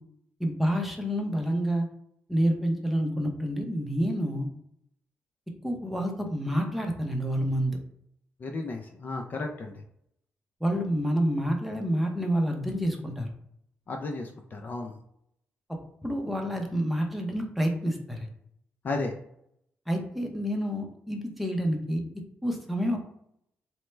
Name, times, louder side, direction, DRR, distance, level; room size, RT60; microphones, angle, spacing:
voice 1, 0.4-1.9 2.3-4.5 5.6-7.8 10.6-13.3 16.0-18.3 19.9-22.0 22.4-23.0, equal, ahead, 1 dB, 0.6 m, -28 dB
voice 2, 8.4-9.8 13.9-14.9 18.8-19.1, left 3 dB, 40° left, 3 dB, 0.4 m, -33 dB
4.4 x 2.0 x 3.2 m, 0.73 s
cardioid pair, 135°, 5 cm